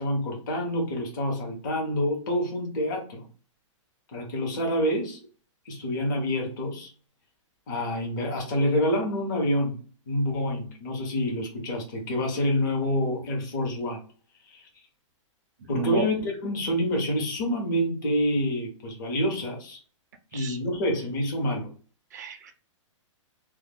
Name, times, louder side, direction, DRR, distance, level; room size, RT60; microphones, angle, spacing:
voice 1, 0.0-3.2 4.1-5.2 5.6-6.9 7.7-9.8 10.1-14.0 14.5-14.7 15.7-19.8 20.3-21.7, equal, 35° left, 0 dB, 0.8 m, -27 dB
voice 2, 15.7-16.1 20.3-20.6 22.1-22.5, right 3 dB, 35° right, 8 dB, 0.3 m, -31 dB
2.2 x 2.2 x 3.4 m, 0.39 s
hypercardioid pair, 175°, 16 cm